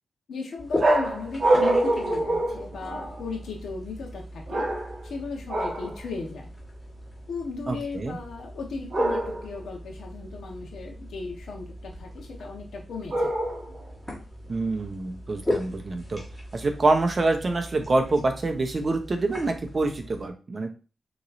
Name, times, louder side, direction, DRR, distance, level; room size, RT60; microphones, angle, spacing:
voice 1, 0.3-4.7 5.0-6.5 7.3-13.3, left 4 dB, 85° left, 1 dB, 1.3 m, -36 dB
sound 1, 0.6-20.3, left 1 dB, 15° left, 1.7 m, -39 dB
sound 2, 0.8-3.3 4.5-5.1 5.5-6.0 8.9-9.6 13.1-13.8, right 1 dB, 65° right, 1.8 m, -25 dB
voice 2, 7.7-8.2 14.5-16.2 16.5-20.7, right 2 dB, 40° right, 5 dB, 0.9 m, -26 dB
6.0 x 3.1 x 2.7 m, 0.33 s
cardioid pair, 100°, 0 cm